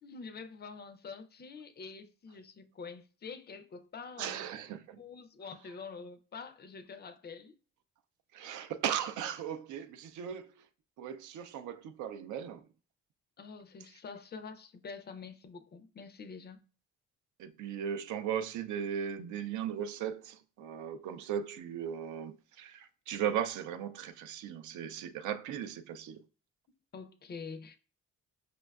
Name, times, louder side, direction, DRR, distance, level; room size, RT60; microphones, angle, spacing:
voice 1, 0.0-4.5 5.0-7.6 13.4-16.6 26.9-27.8, left 5 dB, 35° left, 0.4 m, -46 dB
voice 2, 4.2-5.0 8.3-10.5 11.0-12.6 17.4-26.2, right 9 dB, 75° right, 0.5 m, -37 dB
5.1 x 2.2 x 2.3 m
cardioid pair, 90°, 30 cm